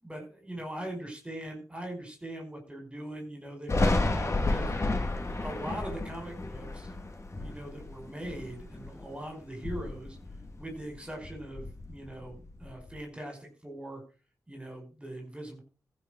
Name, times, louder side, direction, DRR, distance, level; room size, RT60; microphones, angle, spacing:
voice 1, 0.0-4.7 5.4-6.9 7.4-10.2 10.6-14.0 14.5-15.6, right 1 dB, 15° right, 3 dB, 5.1 m, -41 dB
Thunder, 3.7-9.1 9.5-10.9 11.2-12.9, left 2 dB, 45° left, 2.4 m, -32 dB
14.5 x 5.6 x 6.3 m, 0.37 s
cardioid pair, 50°, 7 cm